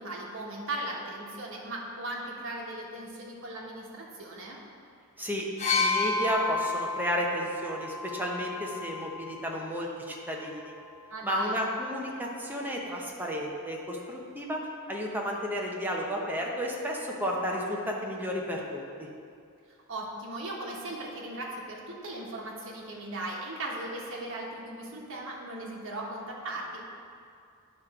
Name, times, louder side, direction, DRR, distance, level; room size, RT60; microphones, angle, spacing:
voice 1, 0.0-4.6 11.1-11.7 19.9-26.8, right 1 dB, 65° right, -3 dB, 1.4 m, -38 dB
sound 1, 5.6-9.4 10.4-10.6, left 3 dB, 30° left, 0.8 m, -31 dB
voice 2, 5.8-10.7 11.2-18.8, equal, 10° right, -2 dB, 0.9 m, -32 dB
9.6 x 3.3 x 5.9 m, 2.4 s
head